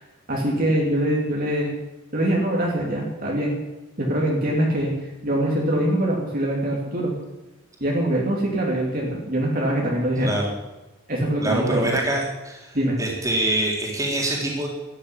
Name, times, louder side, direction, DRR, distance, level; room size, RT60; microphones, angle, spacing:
voice 1, 0.3-1.7 2.1-3.6 4.0-4.9 5.2-7.1 7.8-10.4 11.1-11.9 12.7-13.0, right 1 dB, 40° right, -2 dB, 2.9 m, -23 dB
voice 2, 10.2-10.5 11.4-14.7, right 1 dB, 15° right, -2 dB, 3.8 m, -25 dB
13.5 x 10.0 x 10.0 m, 1.1 s
head